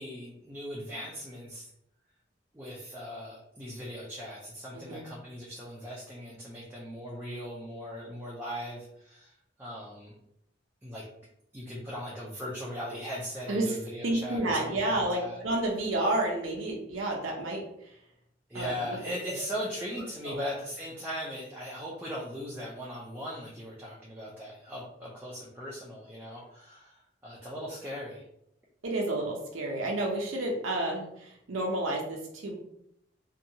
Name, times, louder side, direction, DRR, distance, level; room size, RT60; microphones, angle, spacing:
voice 1, 0.0-1.6 2.5-9.3 9.6-10.1 10.8-11.0 11.5-15.4 18.5-28.2, equal, 10° right, -5 dB, 0.4 m, -39 dB
voice 2, 4.7-5.1 13.5-13.8 14.0-17.6 18.5-19.0 20.2-20.5 28.8-32.6, right 1 dB, 85° right, -1 dB, 0.6 m, -30 dB
2.7 x 2.3 x 2.7 m, 0.76 s
head